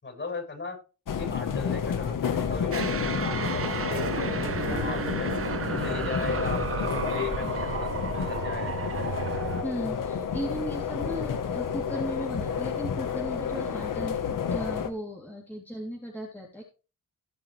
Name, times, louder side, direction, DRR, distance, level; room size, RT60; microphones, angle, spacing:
voice 1, 0.0-0.8 1.1-5.4 5.8-8.7, left 4 dB, 35° left, 3 dB, 6.8 m, -37 dB
sound 1, 1.1-14.9, left 7 dB, 65° left, 1.4 m, -30 dB
sound 2, 2.2-7.8, right 8 dB, 80° right, 1.5 m, -45 dB
sound 3, 2.7-9.6, right 6 dB, 40° right, 0.9 m, -33 dB
voice 2, 9.6-16.6, equal, 5° left, -3 dB, 3.1 m, -36 dB
17.5 x 6.3 x 3.3 m, 0.33 s
cardioid pair, 100°, 35 cm